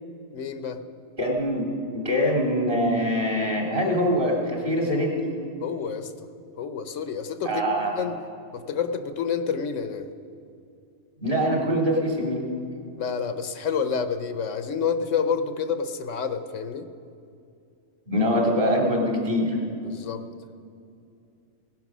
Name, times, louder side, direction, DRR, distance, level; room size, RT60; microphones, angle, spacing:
voice 1, 0.3-0.8 5.6-6.1 6.6-8.1 8.5-10.1 13.0-16.9 19.8-20.2, left 6 dB, 75° left, 10 dB, 1.1 m, -29 dB
voice 2, 1.2-1.7 1.9-5.3 7.4-8.1 11.2-12.5 18.1-19.6, equal, 40° right, -1 dB, 3.0 m, -24 dB
17.5 x 11.0 x 6.1 m, 2.5 s
omnidirectional pair, 1.4 m